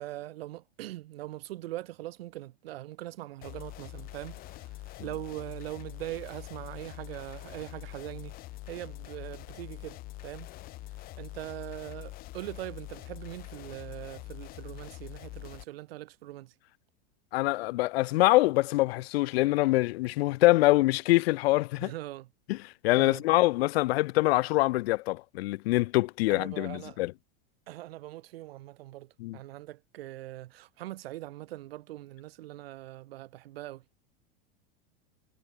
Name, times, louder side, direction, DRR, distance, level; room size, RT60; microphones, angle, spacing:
voice 1, 0.0-8.4 8.7-10.5 11.2-16.5 21.8-22.3 23.0-23.2 26.3-27.0 27.7-33.8, right 16 dB, 75° right, 5.0 m, -41 dB
sound 1, 3.4-15.6, left 18 dB, 30° left, 1.1 m, -44 dB
voice 2, 17.3-21.9 22.5-22.6 22.8-27.1 29.2-29.4, left 20 dB, 80° left, 0.5 m, -24 dB
supercardioid pair, 165°, 30 cm